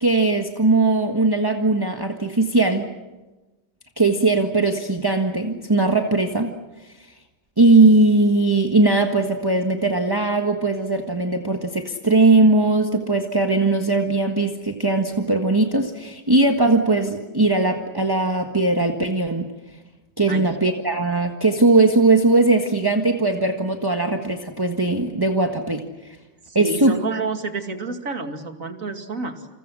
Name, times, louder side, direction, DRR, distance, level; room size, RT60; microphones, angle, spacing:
voice 1, 0.0-2.9 4.0-6.5 7.0-7.1 7.6-19.5 20.2-26.2 26.5-27.0, right 2 dB, 10° right, 4 dB, 1.4 m, -19 dB
voice 2, 26.5-29.5, right 3 dB, 40° right, 5 dB, 2.7 m, -29 dB
29.5 x 28.0 x 6.3 m, 1.1 s
omnidirectional pair, 2.3 m